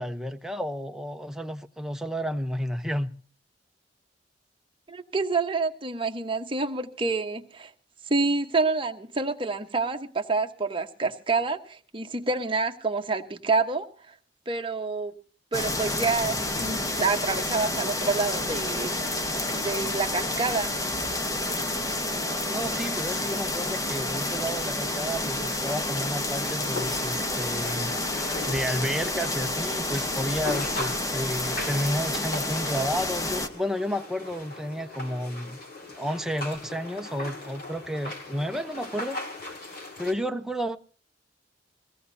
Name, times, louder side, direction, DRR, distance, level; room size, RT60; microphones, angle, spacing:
voice 1, 0.0-3.1 22.5-27.9 28.5-35.6 35.9-39.2 40.0-40.8, equal, 5° right, 0.8 m, -31 dB
voice 2, 4.9-7.7 8.1-14.1 14.5-15.1 15.5-19.0 19.5-20.8, right 3 dB, 30° right, 1.2 m, -28 dB
sound 1, 15.5-33.5, left 1 dB, 20° left, 1.1 m, -29 dB
sound 2, 25.4-40.1, left 2 dB, 55° left, 4.3 m, -39 dB
22.5 x 17.5 x 2.8 m
head